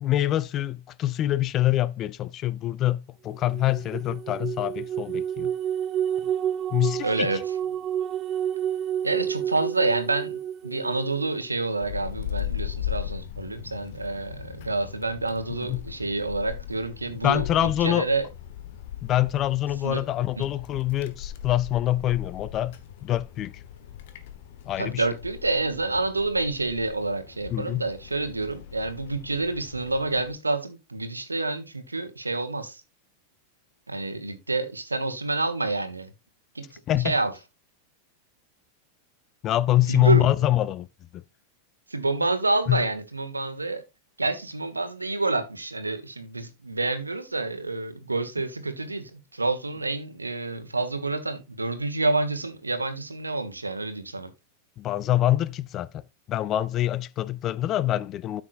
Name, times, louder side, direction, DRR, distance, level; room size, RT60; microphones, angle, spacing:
voice 1, 0.0-5.5 6.7-7.3 15.7-15.8 17.2-18.1 19.0-22.8 23.0-23.5 24.7-25.0 27.5-27.8 36.9-37.2 39.4-40.9 41.1-41.2 42.7-42.8 54.8-56.0 56.3-58.4, left 13 dB, 30° left, 0.4 m, -25 dB
sound 1, 3.5-11.3, right 10 dB, 30° right, 0.4 m, -30 dB
voice 2, 7.0-7.5 9.0-18.3 19.8-20.0 20.4-20.5 24.8-32.8 33.9-36.1 36.5-37.3 39.9-40.3 41.9-43.8 44.2-54.3, right 3 dB, 80° right, 1.3 m, -28 dB
Wind, 11.8-30.3, left 11 dB, 50° left, 1.1 m, -39 dB
12.5 x 6.1 x 2.5 m
figure-of-eight pair, 90°, 0 cm